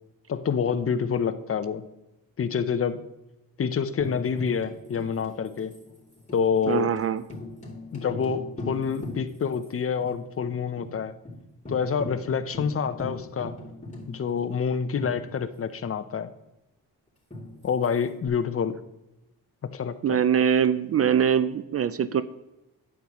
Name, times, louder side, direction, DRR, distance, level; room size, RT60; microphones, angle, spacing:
voice 1, 0.3-1.8 2.4-3.0 3.6-5.7 6.3-6.9 7.9-11.1 11.7-13.5 14.1-16.3 17.6-18.8 19.6-20.2, left 6 dB, 35° left, 12 dB, 0.6 m, -27 dB
Tambourine, 4.0-9.7 10.0-10.1 10.4-10.9 11.2-11.4 11.7-15.8 17.3-18.3, left 1 dB, 20° left, 3.1 m, -40 dB
voice 2, 6.7-7.2 20.0-22.2, right 8 dB, 40° right, 14 dB, 0.4 m, -23 dB
9.0 x 7.3 x 3.0 m, 0.96 s
supercardioid pair, 60°, 39 cm